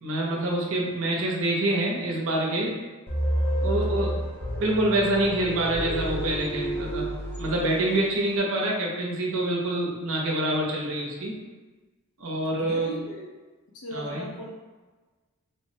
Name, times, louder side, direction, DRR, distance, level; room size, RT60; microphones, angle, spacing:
voice 1, 0.0-2.8 3.6-4.2 4.6-7.0 7.4-11.4 12.2-12.9 13.9-14.3, right 1 dB, 65° right, -2 dB, 0.6 m, -26 dB
sound 1, 3.1-8.1, right 1 dB, 10° left, 0.5 m, -30 dB
voice 2, 12.6-13.4 13.7-14.5, equal, 70° left, -2 dB, 0.7 m, -38 dB
3.2 x 2.1 x 2.6 m, 1.2 s
head